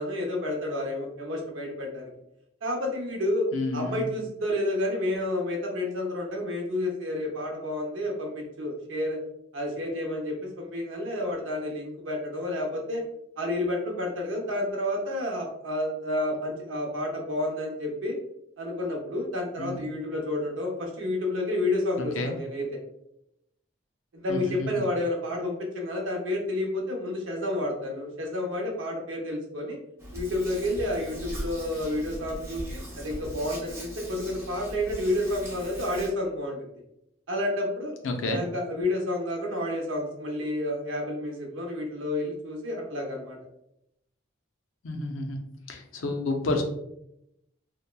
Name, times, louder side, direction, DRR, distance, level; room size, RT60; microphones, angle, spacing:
voice 1, 0.0-2.1 2.6-9.2 9.5-13.0 13.4-18.2 18.6-22.7 24.1-29.8 30.1-36.6 37.3-37.9 38.3-43.4, left 1 dB, 85° right, 1 dB, 0.7 m, -30 dB
voice 2, 3.5-4.1 19.6-19.8 22.2-22.3 24.3-24.7 38.0-38.4 44.8-45.4 45.7-46.6, left 2 dB, 85° left, 4 dB, 0.5 m, -30 dB
Hands, 30.0-36.1, equal, 15° right, 0.5 m, -39 dB
2.9 x 2.1 x 2.2 m, 0.80 s
head